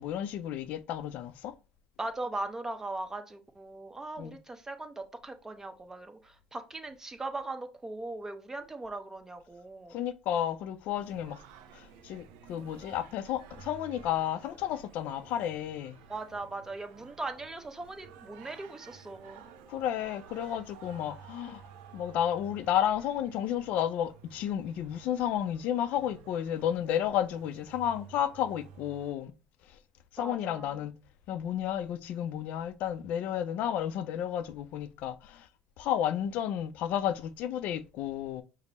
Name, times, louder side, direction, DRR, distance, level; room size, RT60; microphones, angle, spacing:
voice 1, 0.0-1.5 4.2-4.4 9.9-11.4 11.7-16.0 19.7-21.6 21.9-29.3 30.1-30.9 31.3-35.5 35.8-38.4, left 10 dB, 65° left, 0.4 m, -32 dB
voice 2, 2.0-10.0 16.1-19.4 30.2-30.8, right 2 dB, 20° right, 0.8 m, -39 dB
Singing, 10.9-29.1, right 7 dB, 80° right, 0.6 m, -53 dB
5.2 x 2.0 x 4.1 m
supercardioid pair, 75°, 3 cm